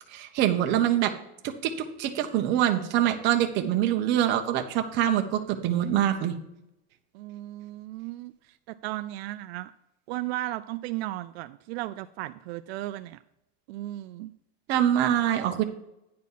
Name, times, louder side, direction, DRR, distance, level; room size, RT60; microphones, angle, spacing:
voice 1, 0.1-1.1 1.4-1.7 2.0-6.4 14.7-15.6, right 11 dB, 35° right, 5 dB, 0.9 m, -24 dB
voice 2, 7.1-9.7 10.1-13.2 13.7-14.3, right 16 dB, 75° right, 11 dB, 0.5 m, -35 dB
9.5 x 4.2 x 7.2 m, 0.85 s
supercardioid pair, 175°, 31 cm